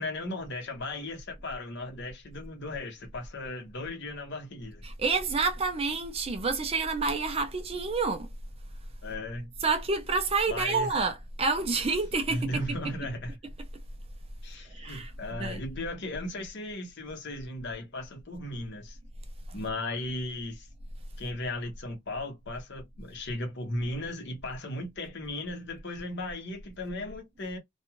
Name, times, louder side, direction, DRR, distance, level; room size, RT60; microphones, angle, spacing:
voice 1, 0.0-4.8 9.0-9.5 10.5-10.9 12.3-13.3 14.4-19.0 19.5-20.7 21.2-27.6, left 1 dB, 55° left, 1.0 m, -36 dB
voice 2, 4.8-8.3 9.6-12.9 14.6-15.1 15.4-15.6, right 4 dB, 30° right, 0.5 m, -28 dB
2.5 x 2.3 x 2.9 m
head